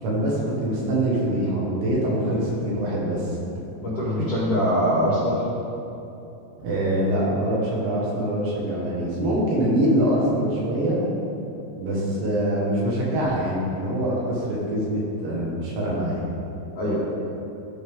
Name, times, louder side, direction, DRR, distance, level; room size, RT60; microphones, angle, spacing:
voice 1, 0.0-3.4 6.6-11.0 11.8-16.3, right 1 dB, 70° right, -5 dB, 3.3 m, -24 dB
voice 2, 3.8-5.4 16.7-17.0, equal, 80° left, -9 dB, 1.4 m, -23 dB
13.0 x 5.1 x 3.5 m, 2.9 s
omnidirectional pair, 5.6 m